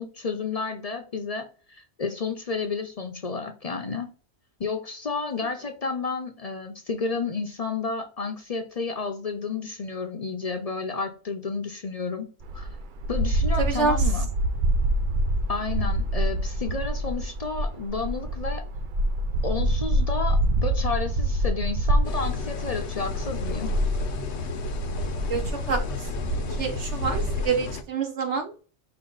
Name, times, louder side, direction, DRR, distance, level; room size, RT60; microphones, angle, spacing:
voice 1, 0.0-4.1 4.6-12.3 12.5-12.8 13.1-14.3 15.5-18.7 19.4-23.7, left 4 dB, 40° left, 5 dB, 0.6 m, -31 dB
sound 1, 12.4-27.5, right 1 dB, 55° right, 0.6 m, -26 dB
voice 2, 13.6-13.9 25.3-25.4 25.7-25.8 26.6-28.5, right 5 dB, 90° right, 5 dB, 1.4 m, -26 dB
sound 2, 22.0-27.8, left 4 dB, 75° left, 1.0 m, -34 dB
5.5 x 2.3 x 3.8 m, 0.37 s
omnidirectional pair, 1.1 m